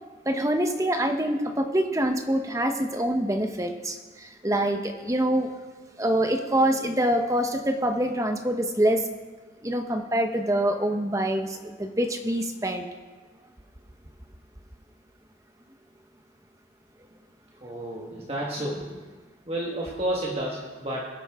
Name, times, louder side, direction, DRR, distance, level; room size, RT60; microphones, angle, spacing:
voice 1, 0.3-5.5 6.0-9.0 9.6-12.9, right 1 dB, 15° right, 5 dB, 1.0 m, -25 dB
voice 2, 17.6-19.0 19.5-21.0, right 1 dB, 30° right, -3 dB, 1.6 m, -31 dB
23.5 x 9.4 x 3.7 m, 1.3 s
head